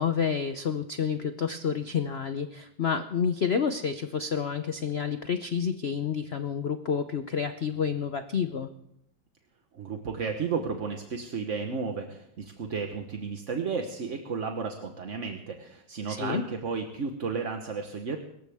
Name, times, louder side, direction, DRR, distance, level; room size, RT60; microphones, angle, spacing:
voice 1, 0.0-8.7 16.1-16.4, left 6 dB, 80° left, 9 dB, 0.5 m, -29 dB
voice 2, 9.7-18.2, right 5 dB, 45° right, 4 dB, 1.2 m, -33 dB
24.5 x 14.0 x 3.5 m, 0.78 s
omnidirectional pair, 2.2 m